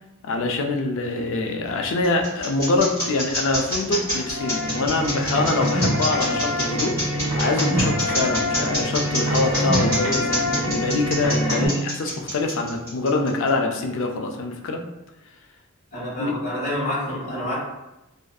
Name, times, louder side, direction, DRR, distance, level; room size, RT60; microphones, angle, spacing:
voice 1, 0.2-14.8 16.2-16.3, left 3 dB, 60° left, 3 dB, 0.3 m, -25 dB
Dog Scratching Itself With Tags Jingling Foley, 1.6-13.5, equal, 10° left, 1.5 m, -27 dB
sound 1, 4.0-11.7, equal, 20° right, 0.9 m, -25 dB
voice 2, 15.9-17.5, left 1 dB, 35° left, -8 dB, 1.1 m, -28 dB
2.5 x 2.4 x 2.2 m, 0.96 s
head